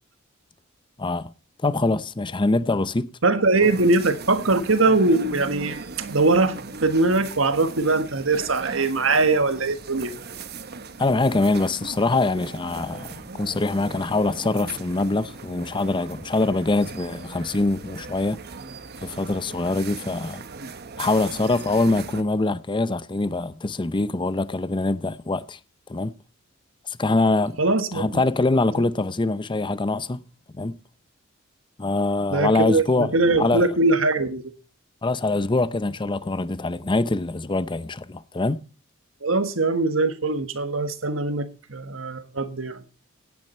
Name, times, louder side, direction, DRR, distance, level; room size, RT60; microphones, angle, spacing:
voice 1, 1.0-1.3 1.6-3.1 3.6-3.7 11.0-18.4 19.0-20.4 21.0-25.6 25.9-26.1 26.9-27.6 27.9-30.2 30.6-30.8 31.8-33.1 33.4-33.7 35.0-38.6, left 2 dB, 25° left, 0.6 m, -24 dB
voice 2, 3.2-10.1 27.6-28.2 28.8-28.9 32.3-34.5 39.2-42.8, right 3 dB, 70° right, 1.5 m, -22 dB
sound 1, 3.6-22.2, right 4 dB, 50° right, 1.1 m, -39 dB
17.0 x 9.8 x 4.3 m
head